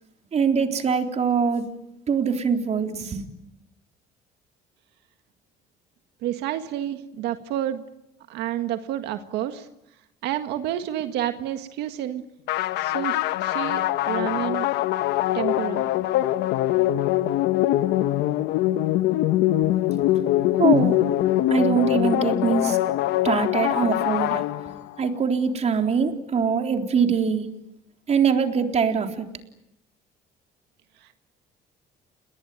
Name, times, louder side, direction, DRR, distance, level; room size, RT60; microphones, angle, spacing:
voice 1, 0.3-1.7 2.1-3.2 19.6-19.7 20.6-21.0 21.5-22.8 23.2-24.4 25.0-27.5 28.1-29.3, right 6 dB, 40° right, 5 dB, 3.7 m, -23 dB
voice 2, 6.2-7.8 8.3-9.7 10.2-12.2 12.8-14.7 15.3-15.8 31.0-31.2, right 12 dB, 85° right, 7 dB, 1.8 m, -29 dB
sound 1, 12.5-25.0, left 14 dB, 90° left, 1.0 m, -23 dB
29.5 x 21.5 x 9.1 m, 0.82 s
cardioid pair, 110°, 17 cm